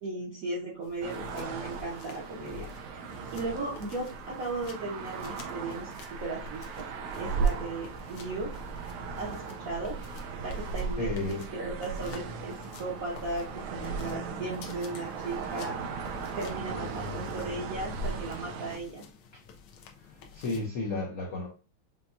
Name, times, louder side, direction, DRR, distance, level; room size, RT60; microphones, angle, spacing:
voice 1, 0.0-3.0 3.3-6.9 7.1-8.5 9.2-9.9 10.4-15.8 16.4-19.0, right 2 dB, 55° right, -5 dB, 1.0 m, -36 dB
sound 1, 0.8-20.7, left 6 dB, 85° left, 1.6 m, -51 dB
sound 2, 1.0-18.8, right 4 dB, 85° right, 1.5 m, -37 dB
voice 2, 11.0-11.4 20.0-21.5, left 3 dB, 60° left, -1 dB, 0.8 m, -33 dB
5.7 x 2.2 x 2.5 m, 0.33 s
omnidirectional pair, 2.3 m